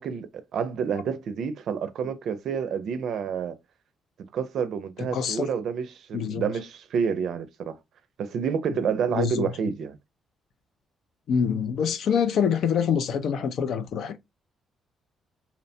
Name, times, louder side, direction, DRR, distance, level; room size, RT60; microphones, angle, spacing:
voice 1, 0.0-3.6 4.3-7.8 8.2-10.0, right 6 dB, 70° right, 0.4 m, -29 dB
voice 2, 5.0-5.5 6.1-6.4 9.1-9.5 11.3-14.2, left 7 dB, 70° left, 0.4 m, -25 dB
2.8 x 2.1 x 2.6 m
cardioid pair, 90°, 0 cm